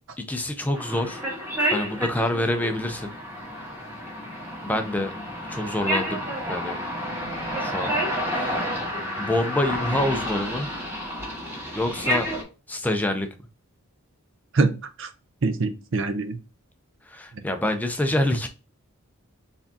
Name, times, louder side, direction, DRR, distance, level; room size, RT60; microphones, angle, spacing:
voice 1, 0.2-1.2 1.7-3.1 4.6-5.1 5.5-6.2 6.5-6.8 7.6-8.0 8.3-8.7 9.2-10.7 11.7-12.3 12.7-13.3 17.1-18.5, left 1 dB, 5° left, 6 dB, 0.4 m, -26 dB
sound 1, 0.7-12.4, equal, 10° right, 1.7 m, -30 dB
voice 2, 14.5-15.1 15.4-16.4, right 3 dB, 55° right, 10 dB, 0.6 m, -24 dB
4.7 x 3.5 x 2.7 m, 0.31 s
head